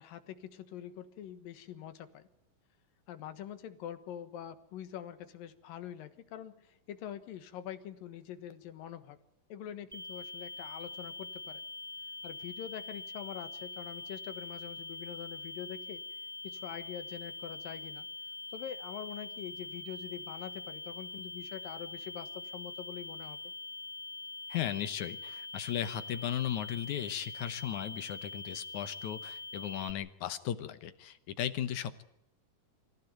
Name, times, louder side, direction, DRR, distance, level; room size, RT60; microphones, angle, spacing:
voice 1, 0.0-2.3 3.1-9.2 9.5-11.6 12.2-16.0 16.4-18.1 18.5-23.4, left 10 dB, 90° left, 11 dB, 3.1 m, -44 dB
sound 1, 9.9-29.9, left 3 dB, ahead, 2.1 m, -44 dB
voice 2, 24.5-32.0, left 10 dB, 70° left, 13 dB, 2.3 m, -36 dB
25.5 x 15.0 x 9.3 m, 0.83 s
omnidirectional pair, 3.9 m